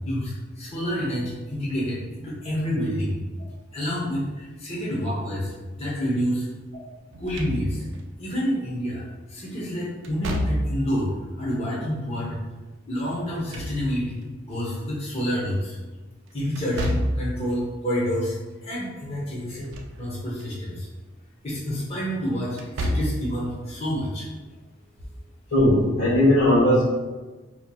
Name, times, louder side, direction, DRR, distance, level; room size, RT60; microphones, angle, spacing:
voice 1, 0.0-3.2 3.7-6.5 7.2-7.8 8.2-11.1 11.4-12.4 12.9-15.8 16.3-19.7 20.0-20.9 21.4-24.3, equal, 30° left, -6 dB, 0.8 m, -28 dB
Slam / Thump thud, 7.1-8.0 10.0-10.9 13.2-14.2 16.6-17.4 19.4-20.0 20.4-20.5 22.5-23.3, equal, 70° right, 0.4 m, -28 dB
voice 2, 25.5-26.8, left 1 dB, 85° left, -6 dB, 1.1 m, -18 dB
4.4 x 2.8 x 2.2 m, 1.2 s
head